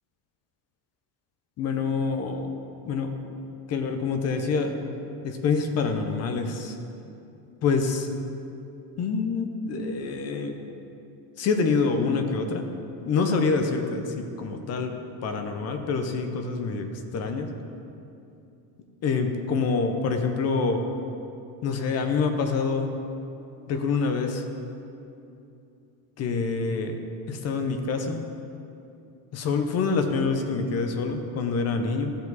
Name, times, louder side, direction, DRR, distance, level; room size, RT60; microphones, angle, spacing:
voice 1, 1.6-2.5 2.8-3.1 3.7-4.8 5.2-6.7 7.6-8.1 9.0-10.6 11.4-12.7 13.0-15.0 15.2-17.5 19.0-20.8 21.6-22.9 23.7-24.4 26.2-27.0 27.3-28.2 29.3-32.2, left 4 dB, 30° left, 6 dB, 0.7 m, -26 dB
14.0 x 4.9 x 4.0 m, 2.7 s
cardioid pair, 150°, 48 cm